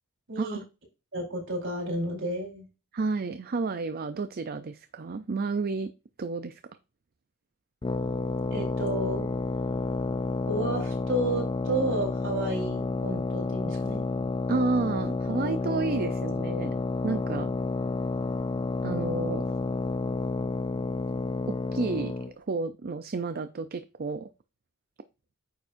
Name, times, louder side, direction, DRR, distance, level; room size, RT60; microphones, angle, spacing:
voice 1, 0.3-0.6 1.1-2.7 8.5-9.2 10.5-14.0, right 1 dB, 65° right, -1 dB, 4.2 m, -31 dB
voice 2, 2.9-5.9 6.2-6.6 14.5-16.7 17.0-17.5 18.8-19.5 21.5-24.3, right 3 dB, 45° right, 11 dB, 0.5 m, -31 dB
sound 1, 7.8-22.3, left 3 dB, 20° left, 0.4 m, -30 dB
9.2 x 7.0 x 2.6 m, 0.30 s
head